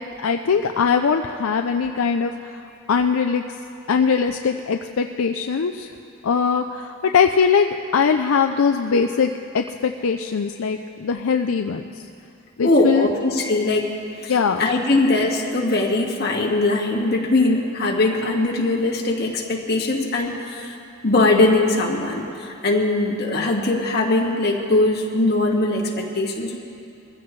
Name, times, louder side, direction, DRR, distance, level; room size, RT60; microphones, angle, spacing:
voice 1, 0.0-2.6 2.9-3.4 3.9-5.9 6.2-11.8 12.6-13.1 14.3-14.6, left 6 dB, 75° left, 5 dB, 0.5 m, -21 dB
voice 2, 12.6-13.9 14.2-14.3 14.6-20.8 21.0-26.6, left 2 dB, 45° left, -2 dB, 1.8 m, -21 dB
22.5 x 15.5 x 3.2 m, 2.6 s
head